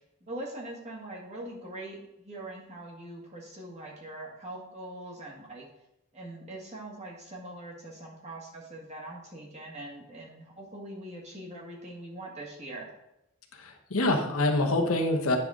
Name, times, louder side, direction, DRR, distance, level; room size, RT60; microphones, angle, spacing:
voice 1, 0.2-5.6 6.1-12.9, right 1 dB, 30° right, -2 dB, 1.6 m, -42 dB
voice 2, 13.5-15.4, left 2 dB, 85° left, 3 dB, 1.0 m, -26 dB
9.2 x 5.5 x 3.7 m, 0.87 s
head